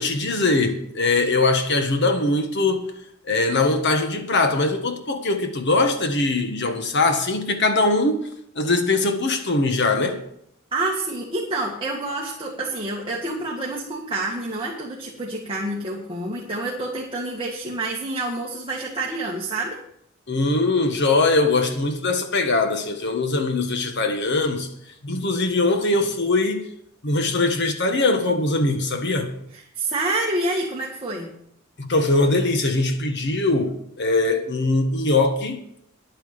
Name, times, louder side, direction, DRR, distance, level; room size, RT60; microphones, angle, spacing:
voice 1, 0.0-2.9 3.2-8.2 8.5-10.2 20.3-24.7 25.0-26.7 27.0-29.3 31.8-35.6, left 2 dB, 55° left, 1.6 m, -21 dB
voice 2, 10.7-19.8 29.5-31.3, right 2 dB, 25° right, 1.8 m, -28 dB
10.5 x 8.8 x 6.8 m
head